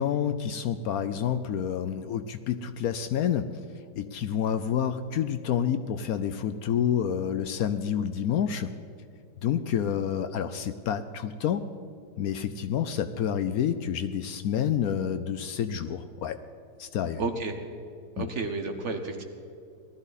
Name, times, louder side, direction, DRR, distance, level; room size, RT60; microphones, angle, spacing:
voice 1, 0.0-3.5 4.0-8.7 9.4-11.6 12.2-16.4 16.8-17.2 18.2-18.3, left 9 dB, 70° left, 10 dB, 1.0 m, -28 dB
voice 2, 17.2-17.5 18.2-19.2, right 3 dB, 50° right, 6 dB, 1.2 m, -31 dB
19.0 x 13.5 x 4.0 m, 2.4 s
omnidirectional pair, 1.8 m